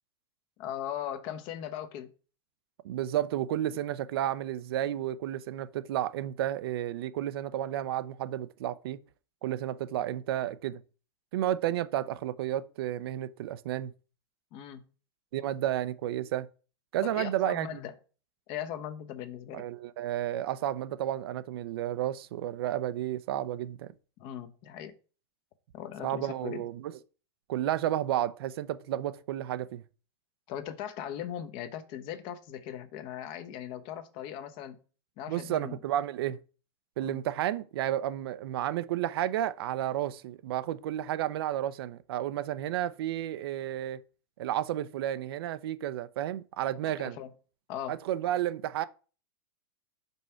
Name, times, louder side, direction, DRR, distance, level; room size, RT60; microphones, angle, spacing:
voice 1, 0.6-2.1 14.5-14.8 17.0-17.9 18.5-19.7 24.2-24.9 25.7-26.6 30.5-34.8 35.2-35.8 37.0-37.2 46.9-47.3 47.7-48.0, left 10 dB, 40° left, 0.9 m, -39 dB
voice 2, 2.8-9.0 9.4-10.8 11.3-13.9 15.3-16.5 16.9-17.8 19.5-23.9 26.0-27.0 27.5-29.8 35.3-36.4 37.0-44.0 44.4-47.2 47.9-48.8, right 12 dB, 65° right, 0.6 m, -32 dB
5.4 x 4.5 x 5.6 m
supercardioid pair, 150°, 13 cm